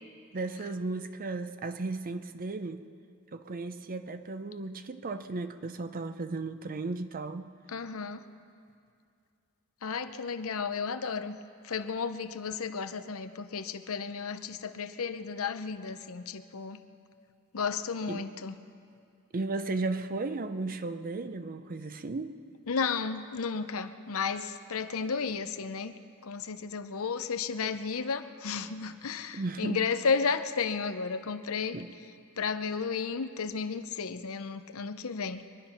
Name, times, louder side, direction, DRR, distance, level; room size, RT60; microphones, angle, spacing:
voice 1, 0.3-2.8 3.3-7.5 18.1-18.3 19.3-22.3 29.3-29.9 31.7-31.9, right 3 dB, 40° right, 10 dB, 0.6 m, -35 dB
voice 2, 7.7-8.2 9.8-11.4 11.6-16.8 17.5-18.6 22.7-26.0 26.2-31.8 32.4-35.4, left 5 dB, 70° left, 10 dB, 0.7 m, -33 dB
23.5 x 10.5 x 5.8 m, 2.4 s
head